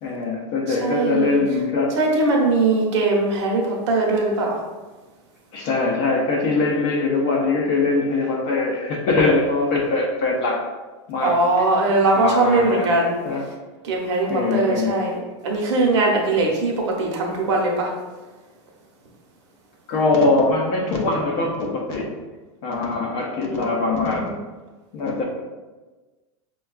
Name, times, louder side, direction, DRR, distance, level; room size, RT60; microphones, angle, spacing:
voice 1, 0.0-2.0 5.5-10.6 11.1-11.4 12.1-12.9 13.2-13.5 14.3-15.0 19.9-22.1 22.6-24.4 24.9-25.2, left 3 dB, 30° left, 0 dB, 0.5 m, -22 dB
voice 2, 0.8-1.4 2.0-4.6 11.2-13.2 13.8-15.2 15.4-17.9, right 2 dB, 70° right, 0 dB, 0.9 m, -20 dB
5.4 x 2.3 x 2.3 m, 1.2 s
supercardioid pair, 180°, 16 cm